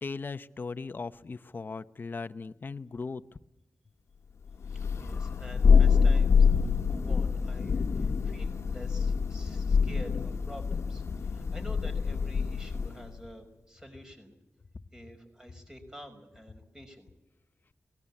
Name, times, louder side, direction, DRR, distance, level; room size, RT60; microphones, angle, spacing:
voice 1, 0.0-3.2, left 4 dB, 45° left, 11 dB, 0.9 m, -38 dB
Thunder, 4.6-13.1, left 5 dB, 80° left, 1.4 m, -25 dB
voice 2, 4.7-6.5 6.9-14.3 14.9-17.1, equal, 15° right, 5 dB, 5.8 m, -48 dB
24.5 x 20.0 x 8.6 m, 0.93 s
wide cardioid pair, 100°, 5 cm